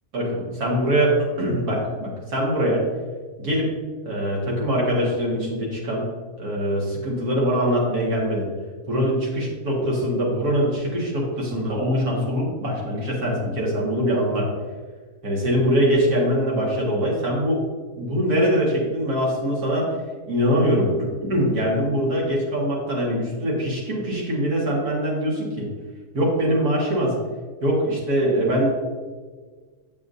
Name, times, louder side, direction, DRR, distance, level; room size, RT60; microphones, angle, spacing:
voice 1, 0.1-1.1 1.4-2.9 3.4-3.7 4.0-6.1 6.4-8.5 8.9-14.5 15.2-17.6 18.0-19.9 20.3-25.7 26.1-27.2 27.6-28.7, equal, 85° right, -4 dB, 2.3 m, -23 dB
7.8 x 7.0 x 2.7 m, 1.4 s
omnidirectional pair, 1.6 m